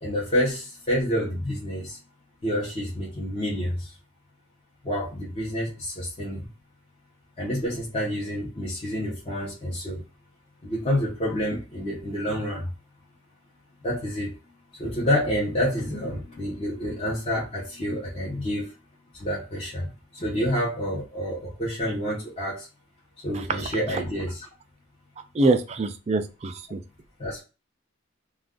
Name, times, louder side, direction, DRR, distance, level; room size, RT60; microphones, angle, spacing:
voice 1, 0.0-2.0 2.4-3.9 4.8-6.5 7.4-10.0 10.6-12.7 13.8-14.4 14.7-18.7 19.1-19.9 20.1-22.7 23.2-24.5 27.2-27.4, equal, 30° left, -7 dB, 0.9 m, -28 dB
voice 2, 23.3-23.7 25.3-26.8, right 2 dB, 30° right, 7 dB, 0.3 m, -24 dB
2.5 x 2.3 x 3.5 m, 0.31 s
head